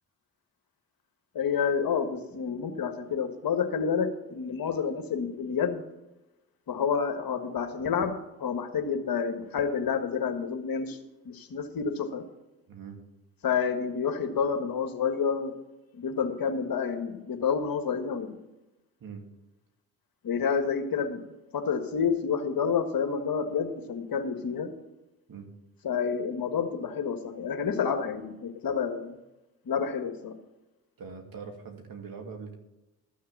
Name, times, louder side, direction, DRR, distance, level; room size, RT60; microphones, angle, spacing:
voice 1, 1.3-5.8 6.7-11.0 11.2-12.2 13.4-15.5 15.9-18.4 20.2-21.2 21.5-24.7 25.8-29.2 29.7-30.4, left 6 dB, 50° left, 7 dB, 1.6 m, -29 dB
voice 2, 12.7-13.0 19.0-19.2 25.3-25.5 31.0-32.5, right 5 dB, 50° right, 3 dB, 2.5 m, -42 dB
13.5 x 6.5 x 7.1 m, 0.99 s
hypercardioid pair, 50°, 43 cm